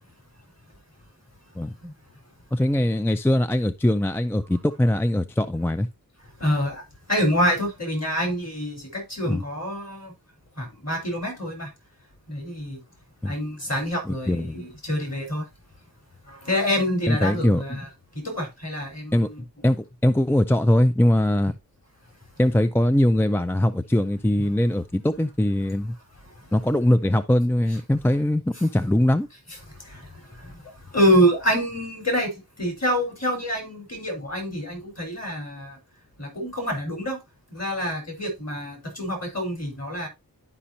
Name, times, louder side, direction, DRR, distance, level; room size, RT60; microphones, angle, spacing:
voice 1, 2.5-5.9 9.2-9.4 13.2-13.3 14.1-14.6 17.1-17.6 19.1-19.3 19.6-21.6 22.4-25.9 26.5-29.3, left 1 dB, 5° left, 0.4 m, -21 dB
voice 2, 6.4-6.8 7.1-10.1 10.6-11.7 12.3-12.8 13.2-15.4 16.3-17.9 18.2-19.4 29.9-30.1 30.4-30.6 30.9-35.8 36.2-37.2 37.5-40.1, equal, 45° left, 4.4 m, -26 dB
11.5 x 5.2 x 2.7 m
wide cardioid pair, 85°, 36 cm